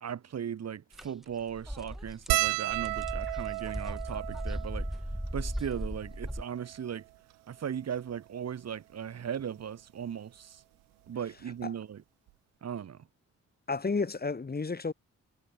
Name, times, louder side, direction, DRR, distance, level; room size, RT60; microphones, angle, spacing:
voice 1, 0.0-4.9 5.3-7.0 7.5-10.6 11.1-12.0 12.6-13.1, right 8 dB, 55° right, 1.2 m, -37 dB
sound 1, 0.9-1.1 1.4-6.4, equal, ahead, 0.6 m, -37 dB
sound 2, 2.3-6.9 7.6-7.7 7.9-8.1 9.4-9.6 11.1-11.2 11.4-11.6, right 27 dB, 85° right, 0.6 m, -34 dB
voice 2, 13.7-14.9, left 4 dB, 30° left, 1.6 m, -31 dB
hypercardioid pair, 40°, 32 cm